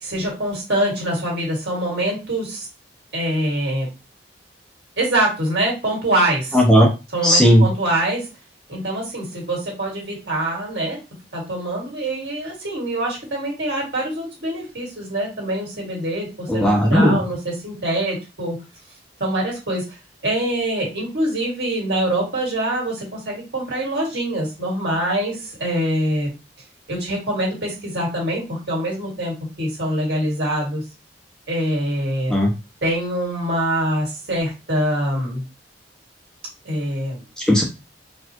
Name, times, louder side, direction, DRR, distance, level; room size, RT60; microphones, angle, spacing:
voice 1, 0.0-2.7 3.1-3.9 5.0-6.6 7.1-8.3 8.7-11.0 11.3-18.6 19.2-20.0 20.2-26.3 26.9-30.8 31.5-32.3 32.8-35.4 36.6-37.2, right 1 dB, 70° right, -2 dB, 1.9 m, -24 dB
voice 2, 6.5-6.9 7.2-7.7 16.5-17.2 32.3-32.5 37.4-37.6, equal, 5° left, 0 dB, 0.6 m, -15 dB
4.1 x 2.4 x 2.9 m, 0.27 s
head